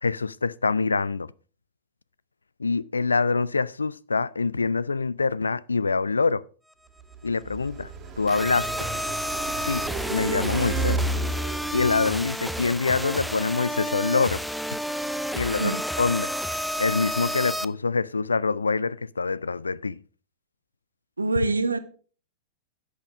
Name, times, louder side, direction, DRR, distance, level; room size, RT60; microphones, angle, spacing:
voice 1, 0.0-1.3 2.6-6.5 7.2-7.9 8.2-8.9 9.6-11.0 11.7-14.4 15.3-16.3 16.8-20.0, left 4 dB, 75° left, 0.3 m, -25 dB
Car passing by, 7.0-12.5, right 2 dB, 30° right, 2.0 m, -32 dB
sound 1, 8.3-17.6, equal, ahead, 0.4 m, -31 dB
voice 2, 21.2-21.8, right 3 dB, 80° right, 0.7 m, -24 dB
10.5 x 6.4 x 4.9 m
figure-of-eight pair, 95°, 0 cm